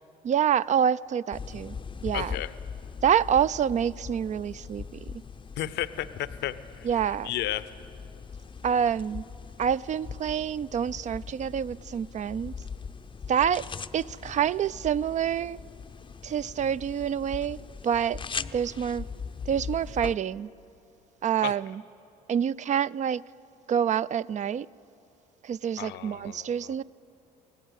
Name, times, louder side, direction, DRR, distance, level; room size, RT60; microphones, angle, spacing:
voice 1, 0.2-1.8 2.0-2.4 3.0-5.2 6.8-7.3 8.6-9.2 9.6-12.5 13.3-13.7 13.9-15.6 16.2-17.6 17.8-18.2 18.5-19.1 19.5-20.5 21.2-21.8 22.3-23.3 23.7-24.7 25.4-26.8, right 8 dB, 40° right, 0.4 m, -27 dB
sound 1, 1.3-20.2, left 6 dB, 25° left, 0.6 m, -40 dB
voice 2, 2.1-2.5 5.6-6.9 7.2-7.7 21.4-21.5 25.8-26.8, left 13 dB, 65° left, 0.7 m, -33 dB
24.0 x 17.0 x 6.5 m
hypercardioid pair, 60°, 19 cm